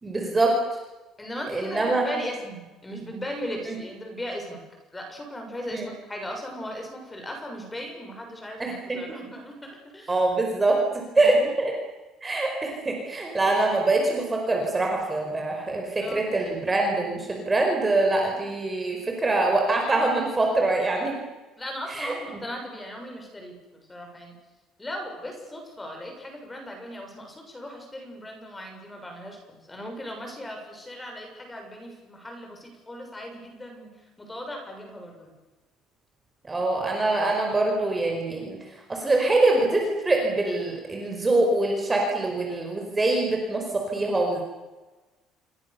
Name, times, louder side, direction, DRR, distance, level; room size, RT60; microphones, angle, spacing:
voice 1, 0.0-0.5 1.5-2.0 3.7-3.8 5.7-5.9 8.6-9.0 10.1-10.8 11.2-11.7 12.2-21.1 21.9-22.1 36.4-38.6 38.9-44.4, right 2 dB, 15° right, 1 dB, 4.8 m, -24 dB
voice 2, 1.2-4.6 4.9-10.1 11.2-11.6 16.0-16.4 21.6-24.3 24.8-33.9 34.2-35.3, equal, 10° left, 3 dB, 6.9 m, -38 dB
28.5 x 24.5 x 7.0 m, 1.2 s
cardioid pair, 165°, 0 cm